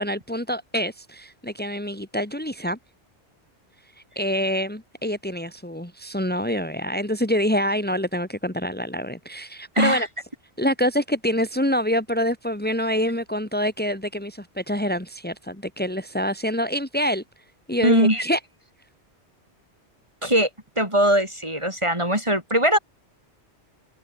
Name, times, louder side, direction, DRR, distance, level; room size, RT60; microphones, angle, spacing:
voice 1, 0.0-2.8 4.1-10.1 10.6-17.2 17.7-18.4, equal, 10° left, 3.0 m, -26 dB
voice 2, 9.7-10.1 17.8-18.2 20.2-20.5 20.8-22.8, right 1 dB, 25° right, 6.4 m, -20 dB
omnidirectional pair, 1.2 m